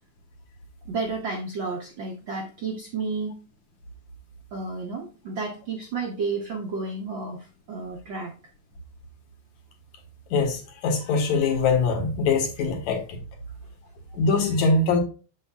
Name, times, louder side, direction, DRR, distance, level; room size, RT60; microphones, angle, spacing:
voice 1, 0.9-3.4 4.5-8.3, right 4 dB, 65° right, 0 dB, 1.2 m, -31 dB
voice 2, 10.3-13.2 14.1-15.0, left 4 dB, 75° left, 3 dB, 2.7 m, -23 dB
7.1 x 6.9 x 2.3 m, 0.35 s
omnidirectional pair, 3.3 m